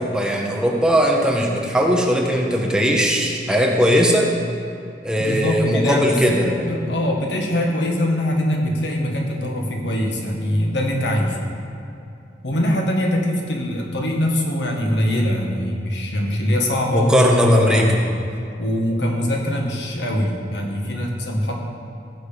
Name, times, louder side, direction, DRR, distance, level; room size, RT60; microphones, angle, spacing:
voice 1, 0.0-4.3 5.0-6.7 16.9-17.9, equal, 5° right, 0 dB, 1.1 m, -18 dB
voice 2, 5.2-11.4 12.4-17.2 17.5-18.1 18.6-21.5, left 1 dB, 90° left, 1 dB, 1.7 m, -23 dB
16.0 x 6.7 x 5.2 m, 2.7 s
head